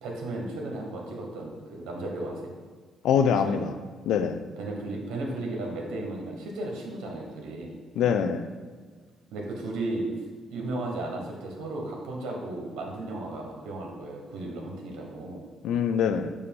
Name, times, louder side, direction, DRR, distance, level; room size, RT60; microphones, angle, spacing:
voice 1, 0.0-2.5 3.4-3.6 4.6-7.7 9.3-10.0 10.5-15.4, right 2 dB, 90° right, 0 dB, 1.1 m, -35 dB
voice 2, 3.0-3.7 4.1-4.4 8.0-8.5 15.6-16.3, left 7 dB, 80° left, 8 dB, 0.4 m, -24 dB
6.8 x 2.7 x 5.3 m, 1.6 s
cardioid pair, 90°, 0 cm